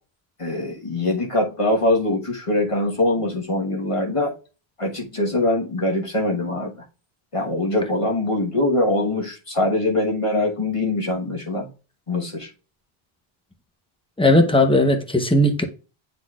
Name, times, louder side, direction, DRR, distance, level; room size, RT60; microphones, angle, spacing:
voice 1, 0.4-4.3 4.8-6.8 7.3-11.7 12.1-12.5, left 2 dB, 30° left, 1.3 m, -23 dB
voice 2, 14.2-15.6, left 1 dB, 5° left, 0.6 m, -17 dB
9.7 x 4.1 x 2.4 m
omnidirectional pair, 1.0 m